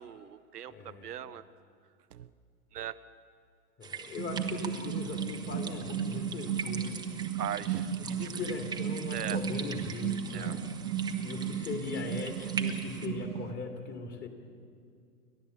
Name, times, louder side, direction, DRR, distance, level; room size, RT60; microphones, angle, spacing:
voice 1, 0.0-1.4 2.1-2.3 2.7-2.9 7.4-7.9 9.1-9.4 10.3-10.5, right 10 dB, 90° right, 12 dB, 0.9 m, -39 dB
voice 2, 0.7-1.1 3.8-7.0 7.9-10.6 11.2-14.3, left 4 dB, 20° left, 4 dB, 2.6 m, -39 dB
sound 1, 3.8-13.1, right 5 dB, 10° right, 1.0 m, -43 dB
sound 2, 4.2-13.5, right 8 dB, 75° right, 1.4 m, -35 dB
29.0 x 12.0 x 8.4 m, 2.3 s
hypercardioid pair, 130°, 45 cm